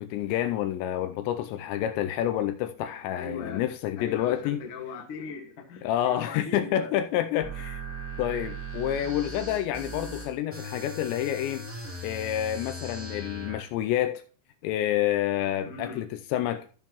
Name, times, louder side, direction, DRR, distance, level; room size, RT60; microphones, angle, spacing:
voice 1, 0.0-4.6 5.8-7.8 8.2-11.6 12.0-14.2 14.6-16.7, left 12 dB, 85° left, 2.7 m, -28 dB
voice 2, 3.1-3.6 4.0-6.9 15.6-16.1, left 4 dB, 55° left, 1.5 m, -39 dB
sound 1, 7.4-13.6, right 1 dB, 10° right, 0.8 m, -38 dB
14.5 x 5.5 x 3.0 m
omnidirectional pair, 5.3 m